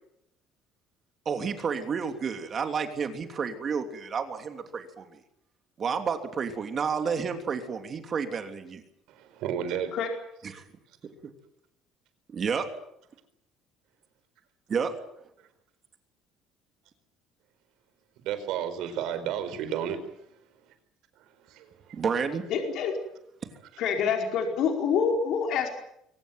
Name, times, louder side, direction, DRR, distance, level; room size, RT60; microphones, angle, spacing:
voice 1, 1.2-5.2 5.8-8.8 10.4-10.6 12.3-12.7 14.7-14.9 21.9-22.4, right 6 dB, 35° right, 6 dB, 3.1 m, -30 dB
voice 2, 9.1-9.9 18.2-20.0 21.5-22.0, right 9 dB, 70° right, 10 dB, 4.6 m, -32 dB
voice 3, 22.5-22.9 23.8-25.7, left 6 dB, 60° left, 3 dB, 4.7 m, -26 dB
23.0 x 18.5 x 9.3 m, 0.76 s
cardioid pair, 145°, 0 cm